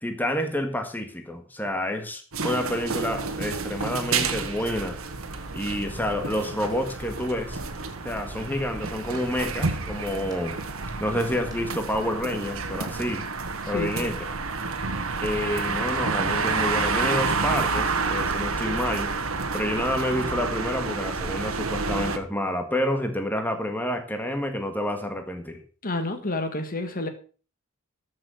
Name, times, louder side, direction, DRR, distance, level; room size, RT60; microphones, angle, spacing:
voice 1, 0.0-5.0 5.5-7.6 8.0-10.6 11.0-13.3 13.7-14.3 15.2-19.1 19.5-25.6, left 1 dB, 10° left, 1.6 m, -29 dB
sound 1, 2.3-22.2, right 4 dB, 80° right, 1.5 m, -29 dB
sound 2, 2.9-11.6, right 1 dB, 20° right, 4.0 m, -47 dB
voice 2, 13.6-14.2 25.8-27.1, left 2 dB, 45° left, 1.6 m, -30 dB
13.5 x 6.6 x 6.2 m
head